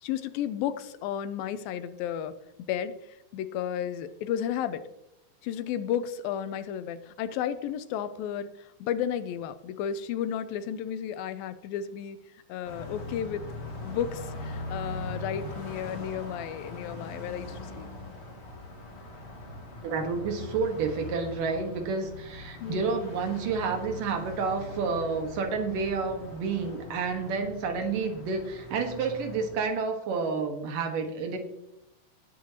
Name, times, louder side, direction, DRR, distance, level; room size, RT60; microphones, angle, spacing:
voice 1, 0.0-2.4 2.7-2.9 3.3-4.9 5.4-12.2 12.5-13.5 13.8-17.9 22.6-22.9, left 9 dB, 90° left, 12 dB, 2.5 m, -33 dB
Car passing by, 12.6-29.8, left 2 dB, 30° left, 1.2 m, -41 dB
voice 2, 19.8-31.4, right 4 dB, 70° right, 5 dB, 3.1 m, -30 dB
19.0 x 9.1 x 2.9 m, 0.85 s
omnidirectional pair, 4.0 m